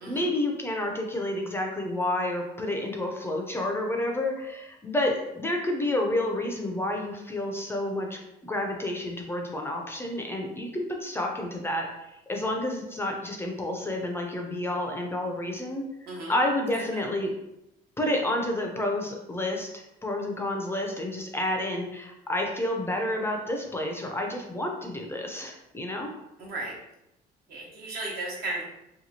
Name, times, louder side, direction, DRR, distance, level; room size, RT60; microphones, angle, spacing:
voice 1, 0.1-11.9 12.3-17.3 18.0-26.1, left 1 dB, 15° left, 1 dB, 0.4 m, -30 dB
voice 2, 26.4-26.7 27.5-28.6, right 2 dB, 70° right, -3 dB, 1.0 m, -35 dB
2.8 x 2.3 x 2.7 m, 0.88 s
cardioid pair, 110°, 17 cm